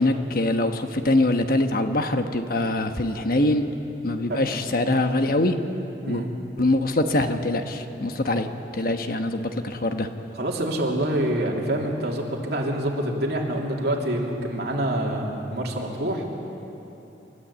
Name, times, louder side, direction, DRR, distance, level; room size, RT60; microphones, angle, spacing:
voice 1, 0.0-3.6 4.0-5.5 6.1-6.2 6.6-10.1, left 2 dB, 55° left, 7 dB, 1.2 m, -23 dB
voice 2, 10.4-16.2, right 1 dB, 65° right, -1 dB, 3.1 m, -26 dB
28.5 x 13.5 x 8.4 m, 3.0 s
head